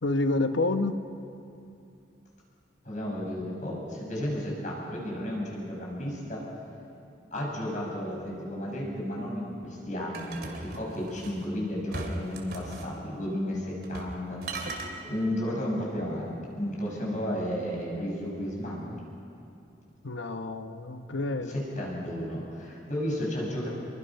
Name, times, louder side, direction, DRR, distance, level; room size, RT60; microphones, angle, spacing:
voice 1, 0.0-1.0 20.0-21.5, left 2 dB, 90° left, 8 dB, 1.1 m, -28 dB
voice 2, 2.8-6.4 7.3-18.9 21.5-23.7, equal, 40° left, -3 dB, 6.2 m, -33 dB
sound 1, 10.1-11.4 11.9-12.9 13.8-14.2 14.4-14.9, right 2 dB, 55° right, 2.5 m, -38 dB
26.5 x 22.5 x 5.7 m, 2.7 s
head